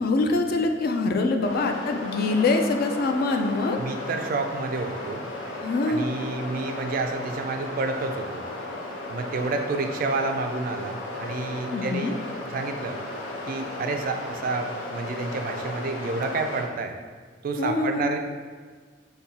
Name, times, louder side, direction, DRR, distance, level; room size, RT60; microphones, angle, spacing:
voice 1, 0.0-3.8 5.6-6.1 11.7-12.2 17.6-18.1, left 3 dB, 55° left, 5 dB, 0.3 m, -24 dB
sound 1, 1.4-16.6, left 2 dB, 85° left, 0.7 m, -35 dB
voice 2, 3.8-5.2 5.9-8.4 9.1-13.0 13.5-16.9 17.4-18.2, right 3 dB, 50° right, 5 dB, 0.3 m, -29 dB
3.9 x 2.2 x 4.0 m, 1.5 s
head